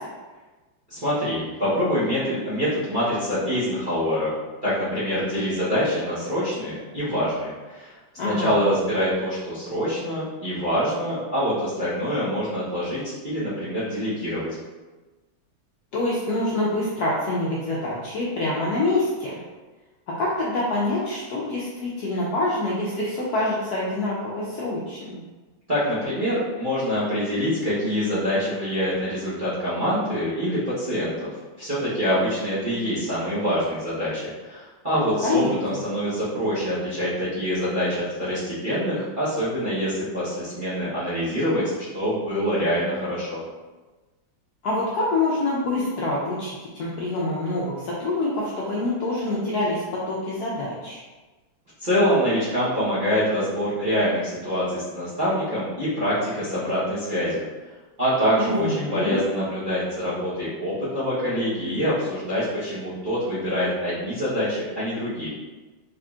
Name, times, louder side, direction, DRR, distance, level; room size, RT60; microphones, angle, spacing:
voice 1, 0.9-4.3 4.6-7.9 8.2-14.5 25.7-31.3 31.6-41.6 41.9-43.4 51.8-57.4 58.0-65.3, equal, 40° right, -13 dB, 0.7 m, -25 dB
voice 2, 8.2-8.5 15.9-19.3 20.1-25.2 35.2-35.5 44.6-51.0 58.4-59.2, left 2 dB, 75° left, -6 dB, 0.9 m, -26 dB
3.7 x 3.5 x 2.3 m, 1.2 s
omnidirectional pair, 2.2 m